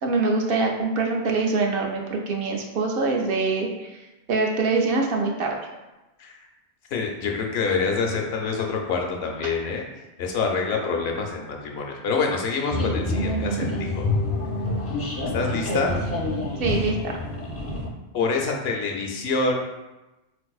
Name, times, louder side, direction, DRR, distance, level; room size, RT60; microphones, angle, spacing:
voice 1, 0.0-3.9 4.3-5.6 9.4-9.5 16.6-16.9, right 3 dB, 65° right, 1 dB, 0.7 m, -24 dB
voice 2, 6.9-9.8 10.2-13.6 14.0-14.1 15.3-16.0 18.1-19.6, left 4 dB, 70° left, 1 dB, 0.8 m, -26 dB
sound 1, 12.7-17.9, left 1 dB, 20° left, 0.3 m, -27 dB
4.1 x 2.6 x 2.3 m, 1.0 s
omnidirectional pair, 1.2 m